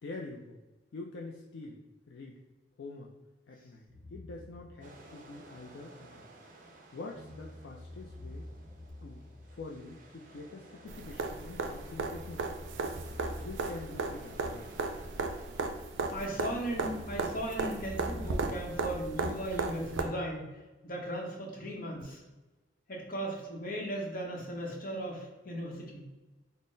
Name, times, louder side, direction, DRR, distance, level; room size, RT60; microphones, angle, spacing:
voice 1, 0.0-0.6 0.9-1.8 2.1-2.4 2.8-3.1 3.5-3.8 4.1-6.3 6.9-8.5 9.0-9.2 9.5-12.5 13.4-14.8, left 3 dB, 70° left, -1 dB, 0.4 m, -45 dB
sound 1, 3.9-6.7 7.1-11.3 11.9-16.0 16.7-20.7, left 1 dB, 15° left, 1.0 m, -50 dB
sound 2, 4.8-15.6, right 2 dB, 50° right, 0.6 m, -55 dB
sound 3, 10.9-20.0 22.0-22.1, right 3 dB, 90° right, 0.4 m, -36 dB
voice 2, 16.1-22.2 22.9-26.1, right 1 dB, 50° left, 0 dB, 0.8 m, -37 dB
3.8 x 2.0 x 3.8 m, 1.1 s
head